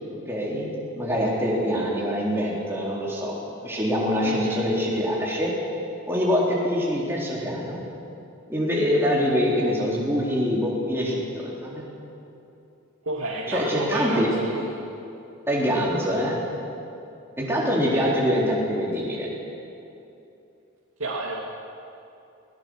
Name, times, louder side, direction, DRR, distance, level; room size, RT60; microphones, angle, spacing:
voice 1, 0.3-3.4 3.6-5.5 6.1-7.8 8.5-11.8 13.5-14.3 15.5-16.4 17.4-19.3, equal, 10° right, -5 dB, 3.9 m, -24 dB
voice 2, 4.2-4.6 13.0-14.7 17.9-18.0 21.0-21.4, right 2 dB, 85° right, -4 dB, 2.4 m, -31 dB
21.0 x 19.5 x 6.5 m, 2.8 s
head